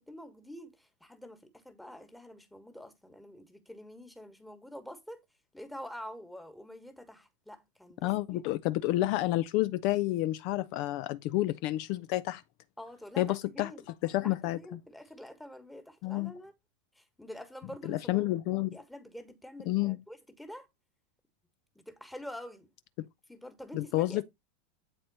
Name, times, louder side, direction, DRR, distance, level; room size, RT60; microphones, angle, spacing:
voice 1, 0.0-5.2 5.5-8.4 12.8-13.9 14.2-16.5 17.0-18.3 18.7-20.7 21.7-22.7 23.3-24.2, equal, 5° left, 1.5 m, -47 dB
voice 2, 8.0-12.4 13.2-13.7 14.0-14.8 16.0-16.3 17.8-18.8 19.7-20.0 23.7-24.2, left 16 dB, 50° left, 0.4 m, -30 dB
8.4 x 4.3 x 4.1 m
figure-of-eight pair, 85°, 0 cm